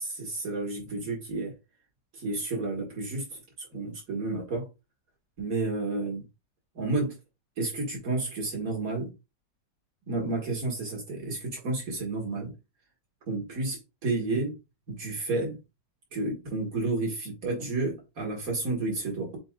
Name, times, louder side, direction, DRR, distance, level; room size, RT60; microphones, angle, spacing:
voice 1, 0.0-1.5 2.2-3.2 3.6-4.7 5.4-6.2 6.8-7.1 7.6-9.1 10.1-12.5 13.3-14.5 14.9-15.6 16.1-19.4, right 3 dB, 50° right, 2.1 m, -31 dB
7.7 x 2.9 x 2.4 m
omnidirectional pair, 2.0 m